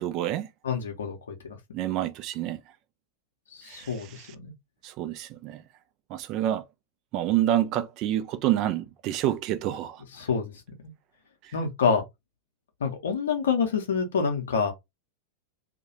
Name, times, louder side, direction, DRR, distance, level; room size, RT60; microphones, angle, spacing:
voice 1, 0.0-0.5 1.7-2.6 3.7-4.3 4.8-5.6 6.1-6.6 7.1-10.0 11.4-11.5, right 12 dB, 40° right, 0.3 m, -28 dB
voice 2, 0.6-1.6 3.5-4.5 10.2-10.5 11.5-12.0 12.8-14.7, left 6 dB, 65° left, 0.7 m, -27 dB
2.3 x 2.1 x 2.9 m
figure-of-eight pair, 90°, 0 cm